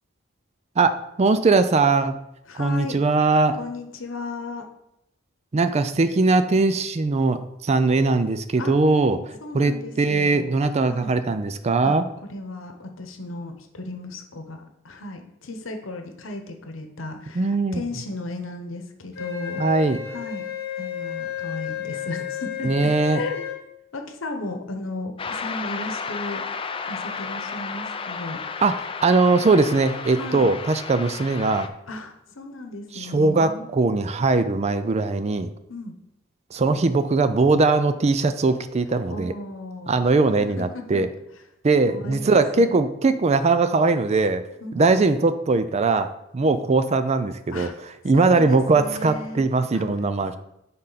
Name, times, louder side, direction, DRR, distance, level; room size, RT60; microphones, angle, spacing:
voice 1, 0.8-2.2 2.5-3.6 5.5-12.1 17.3-17.8 19.6-20.0 22.6-23.2 28.6-31.7 32.9-35.5 36.5-39.3 39.9-41.1 41.6-44.4 44.7-47.7 48.0-50.4, right 3 dB, 35° right, 11 dB, 0.4 m, -20 dB
voice 2, 2.5-3.0 3.5-4.6 8.6-8.7 9.4-10.5 10.9-11.1 11.8-12.0 12.2-19.6 20.1-20.4 20.8-23.4 23.9-26.4 26.9-28.4 30.2-30.5 31.9-33.7 35.7-35.9 39.1-40.1 40.4-41.0 41.9-42.7 44.6-44.8 47.5-47.7 48.1-49.5 49.7-49.9, left 2 dB, 80° left, 5 dB, 1.0 m, -35 dB
Wind instrument woodwind instrument, 19.1-23.6, left 11 dB, 55° left, 1.5 m, -32 dB
sound 1, 25.2-31.7, left 5 dB, 25° left, 0.4 m, -33 dB
9.8 x 3.7 x 4.0 m, 0.84 s
head